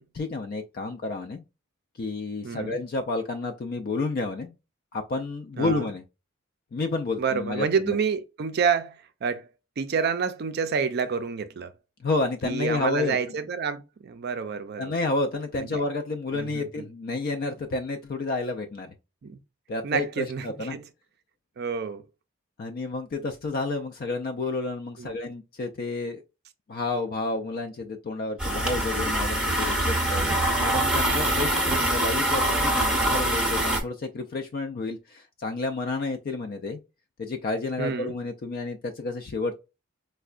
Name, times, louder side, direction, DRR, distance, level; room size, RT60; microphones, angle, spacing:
voice 1, 0.1-1.4 2.0-4.5 4.9-6.0 6.7-7.9 12.0-13.2 14.8-18.9 19.7-20.8 22.6-26.2 26.7-36.8 37.2-39.5, left 3 dB, 45° left, 0.3 m, -30 dB
voice 2, 2.4-2.8 5.6-5.8 7.2-9.5 9.8-11.7 12.4-15.0 15.7-15.8 16.3-16.8 19.2-19.4 19.8-20.8 21.6-22.0 25.0-25.2 37.8-38.1, right 6 dB, 50° right, 0.4 m, -28 dB
sound 1, 28.4-33.8, right 1 dB, 5° right, 0.7 m, -24 dB
4.5 x 2.1 x 2.4 m
head